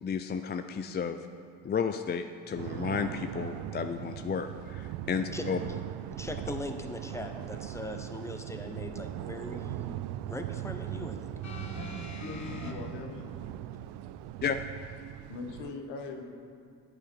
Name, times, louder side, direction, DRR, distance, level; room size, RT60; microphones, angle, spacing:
voice 1, 0.0-1.2 1.6-5.6 14.4-14.6, left 6 dB, 25° left, 8 dB, 0.4 m, -32 dB
sound 1, 2.6-15.7, right 13 dB, 65° right, 0.5 m, -39 dB
voice 2, 6.1-10.0 10.3-11.3, left 1 dB, 5° left, 5 dB, 1.0 m, -40 dB
sound 2, 11.4-12.7 13.7-13.8, left 3 dB, 40° left, 1.5 m, -41 dB
voice 3, 12.2-13.3 15.3-16.2, left 4 dB, 75° left, 4 dB, 1.2 m, -41 dB
10.5 x 8.8 x 4.6 m, 2.3 s
hypercardioid pair, 55°, 43 cm